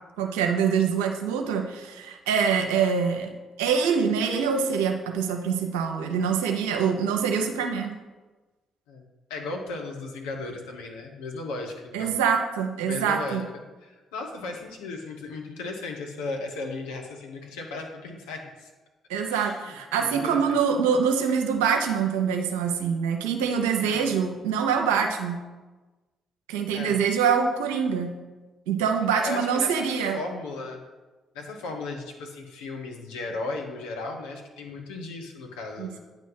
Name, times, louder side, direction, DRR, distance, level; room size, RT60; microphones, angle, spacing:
voice 1, 0.2-3.3 3.6-7.9 11.9-13.4 19.1-25.4 26.5-28.1 28.7-30.2 35.8-36.0, right 6 dB, 75° right, 3 dB, 0.7 m, -25 dB
voice 2, 9.3-12.1 12.8-13.4 13.8-18.7 19.3-19.7 20.0-20.6 23.8-24.1 26.7-27.0 29.1-30.8 31.3-36.0, left 3 dB, 75° left, 1 dB, 0.9 m, -36 dB
9.0 x 3.1 x 5.6 m, 1.2 s
figure-of-eight pair, 45°, 0 cm